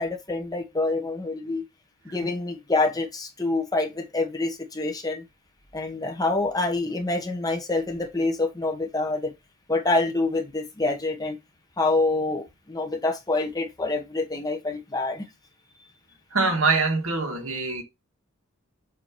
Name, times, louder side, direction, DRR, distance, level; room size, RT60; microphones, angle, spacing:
voice 1, 0.0-1.6 2.0-5.2 5.7-9.3 9.7-11.4 11.8-15.2, left 2 dB, 20° left, 1.0 m, -26 dB
voice 2, 16.3-17.8, right 4 dB, 85° right, 1.7 m, -24 dB
7.6 x 2.9 x 4.4 m
head